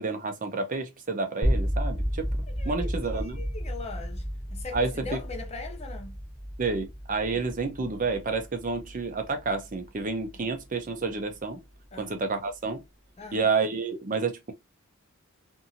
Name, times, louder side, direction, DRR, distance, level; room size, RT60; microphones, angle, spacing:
voice 1, 0.0-2.3 2.7-3.4 4.7-4.9 6.6-11.6 12.0-12.8 13.3-14.5, right 4 dB, 35° right, 0.5 m, -29 dB
sound 1, 1.4-11.4, equal, 10° left, 0.8 m, -33 dB
voice 2, 2.5-6.2 10.4-10.5 11.9-12.2 13.2-13.5, left 4 dB, 30° left, 0.5 m, -41 dB
2.6 x 2.6 x 2.7 m
head